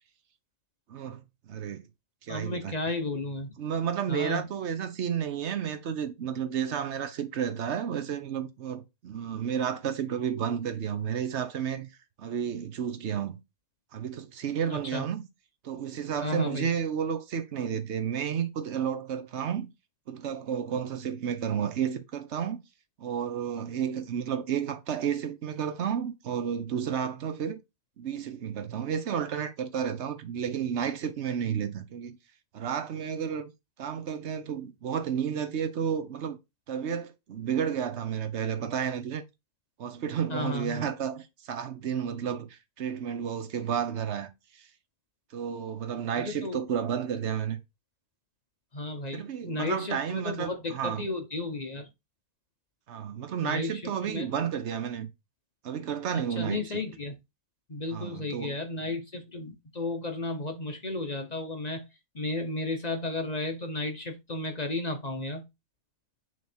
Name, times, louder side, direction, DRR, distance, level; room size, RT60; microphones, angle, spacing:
voice 1, 0.9-1.8 2.2-2.8 3.6-11.9 12.2-13.4 13.9-15.2 15.6-19.7 20.1-22.6 23.0-27.6 28.0-32.2 32.5-33.5 33.8-36.4 36.7-39.2 39.8-44.3 44.6-44.7 45.3-47.6 49.1-51.0 52.9-55.1 55.6-56.8 57.9-58.6, right 8 dB, 50° right, 0.9 m, -31 dB
voice 2, 2.3-3.5 4.1-4.4 14.9-15.0 16.2-16.7 40.3-40.9 46.2-46.6 48.7-51.9 53.4-54.3 56.1-57.1 57.7-61.8 62.1-65.4, left 2 dB, 40° left, 0.6 m, -33 dB
6.3 x 3.6 x 4.4 m
omnidirectional pair, 1.9 m